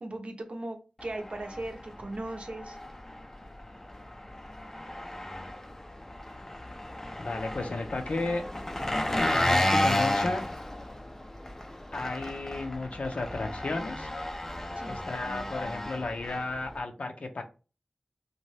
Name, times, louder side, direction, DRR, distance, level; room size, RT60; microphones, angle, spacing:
voice 1, 0.0-2.8 14.8-15.0, right 1 dB, 60° right, 4 dB, 0.6 m, -38 dB
Engine, 1.0-16.8, left 1 dB, 20° left, 0.4 m, -33 dB
voice 2, 7.2-8.4 9.2-10.4 11.9-14.1 14.9-17.4, left 2 dB, 65° left, 5 dB, 0.5 m, -33 dB
2.7 x 2.2 x 3.1 m, 0.33 s
wide cardioid pair, 55°, 2 cm